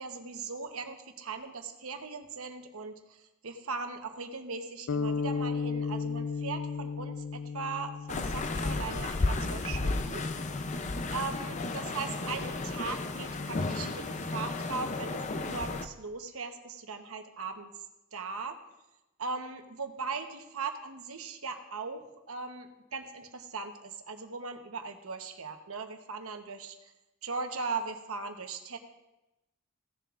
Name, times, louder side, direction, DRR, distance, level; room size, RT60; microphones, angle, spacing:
voice 1, 0.0-10.2 11.1-17.7 18.1-18.6 19.2-26.8 27.2-28.8, right 4 dB, 85° right, 6 dB, 1.0 m, -39 dB
sound 1, 4.9-9.1, left 5 dB, 85° left, 0.4 m, -34 dB
sound 2, 8.1-15.9, left 3 dB, 35° left, 0.5 m, -33 dB
16.0 x 10.0 x 2.5 m, 0.99 s
head